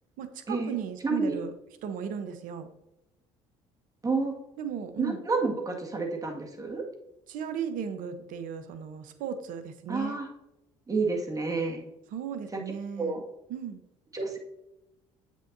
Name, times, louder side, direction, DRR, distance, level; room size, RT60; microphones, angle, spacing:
voice 1, 0.2-1.5 1.8-2.7 4.6-5.2 7.3-10.2 12.1-13.2 13.5-13.8, right 8 dB, 65° right, 10 dB, 0.9 m, -35 dB
voice 2, 1.0-1.4 4.0-4.3 5.0-6.8 9.9-10.3 10.9-11.8 12.5-12.6 13.0-13.2 14.1-14.4, right 3 dB, 25° right, 1 dB, 1.8 m, -29 dB
7.6 x 6.6 x 2.6 m, 0.89 s
supercardioid pair, 70°, 15 cm